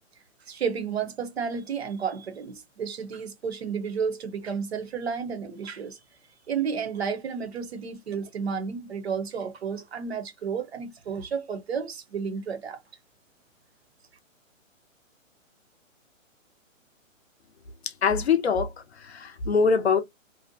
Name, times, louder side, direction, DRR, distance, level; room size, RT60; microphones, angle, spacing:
voice 1, 0.5-6.0 6.5-12.8, right 6 dB, 50° right, 0.6 m, -32 dB
voice 2, 17.8-18.7 19.0-20.0, left 5 dB, 55° left, 0.5 m, -23 dB
2.6 x 2.1 x 2.5 m
hypercardioid pair, 170°, 40 cm